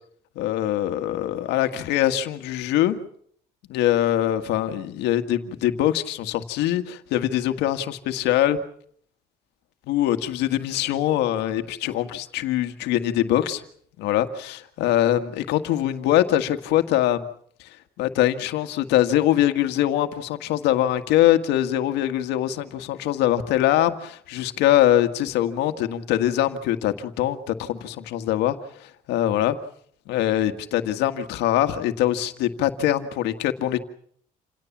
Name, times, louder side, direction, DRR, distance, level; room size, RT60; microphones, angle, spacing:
voice 1, 0.3-3.0 3.7-8.6 9.9-13.6 14.0-17.3 18.0-29.5 30.1-33.8, left 12 dB, 85° left, 8 dB, 1.8 m, -23 dB
28.5 x 18.0 x 7.3 m, 0.65 s
cardioid pair, 110°, 17 cm